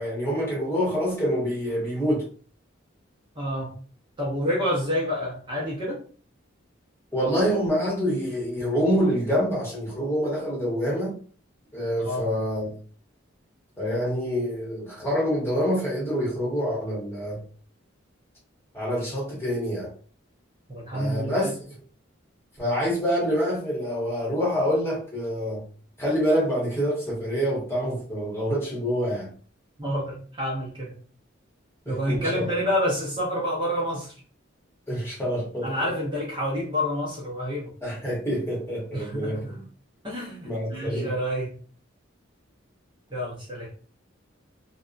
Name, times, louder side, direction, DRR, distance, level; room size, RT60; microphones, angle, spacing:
voice 1, 0.0-2.2 7.1-11.2 11.7-12.7 13.8-17.4 18.7-19.9 20.9-21.5 22.6-25.6 26.0-29.3 31.9-32.5 34.9-35.7 37.8-39.7 40.4-41.1, equal, 10° left, -5 dB, 1.0 m, -26 dB
voice 2, 3.4-3.7 4.2-6.0 12.0-12.3 20.7-21.5 29.8-30.9 31.9-34.1 35.6-37.7 38.9-39.5 40.0-41.5 43.1-43.7, equal, 25° right, -5 dB, 0.6 m, -28 dB
2.6 x 2.1 x 2.4 m, 0.43 s
head